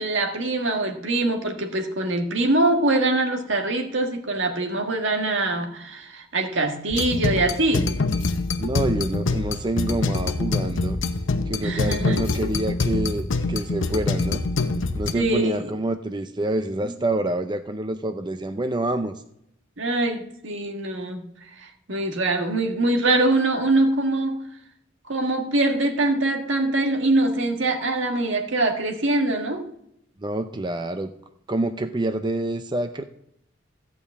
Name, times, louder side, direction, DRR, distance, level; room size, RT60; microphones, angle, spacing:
voice 1, 0.0-7.9 11.6-12.2 15.1-15.7 16.8-16.9 19.8-21.3 21.6-24.5 25.1-29.7, right 2 dB, 70° right, 3 dB, 1.7 m, -23 dB
sound 1, 6.9-15.1, left 3 dB, 75° left, 0.8 m, -25 dB
voice 2, 8.6-11.0 11.5-14.4 14.9-19.2 30.2-31.1 31.5-33.0, right 2 dB, 25° right, 9 dB, 0.5 m, -27 dB
14.5 x 5.3 x 8.3 m, 0.77 s
head